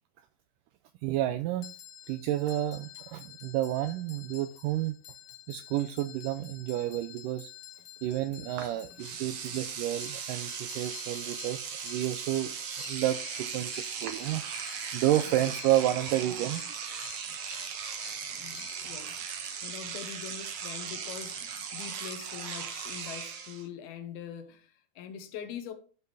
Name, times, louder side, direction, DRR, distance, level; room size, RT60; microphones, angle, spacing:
voice 1, 1.0-1.7 2.1-5.0 5.5-7.5 8.0-12.5 12.8-17.1, right 13 dB, 85° right, 1.9 m, -30 dB
sound 1, 1.6-20.4, left 12 dB, 60° left, 1.9 m, -50 dB
Engine / Domestic sounds home sounds, 8.6-8.7 9.0-23.6, right 7 dB, 60° right, 1.7 m, -38 dB
voice 2, 9.1-9.6 15.3-15.4 18.3-19.2 19.6-25.7, left 9 dB, 85° left, 3.1 m, -43 dB
12.0 x 5.8 x 3.4 m
omnidirectional pair, 4.3 m